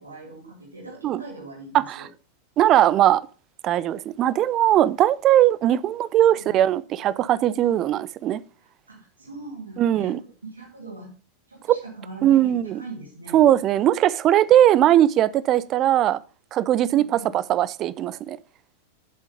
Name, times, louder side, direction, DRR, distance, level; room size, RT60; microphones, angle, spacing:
voice 1, 0.0-2.1 6.3-6.6 8.9-11.1 11.5-13.5 16.9-17.3, right 3 dB, 75° right, 2.0 m, -41 dB
voice 2, 1.7-2.1 2.6-3.2 3.6-8.4 9.8-10.2 11.7-11.8 12.2-12.8 13.3-16.2 16.5-18.4, right 12 dB, 35° right, 0.5 m, -19 dB
7.7 x 7.6 x 4.9 m
figure-of-eight pair, 90°, 0 cm